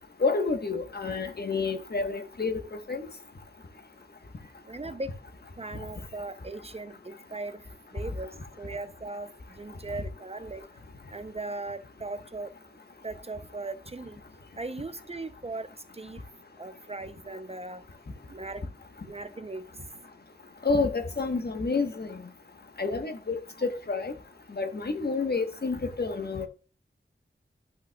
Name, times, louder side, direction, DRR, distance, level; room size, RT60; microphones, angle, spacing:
voice 1, 0.2-2.6 2.9-3.1 20.6-22.2 22.8-23.4 23.6-24.1 24.6-26.5, left 4 dB, 55° left, 1.1 m, -29 dB
voice 2, 4.7-5.1 5.6-7.6 7.9-10.7 11.1-12.5 13.0-14.2 14.6-15.7 15.9-16.2 16.6-17.8 18.3-18.7 19.0-19.7, right 2 dB, 30° right, 0.5 m, -38 dB
11.5 x 5.6 x 2.2 m
wide cardioid pair, 70°, 20 cm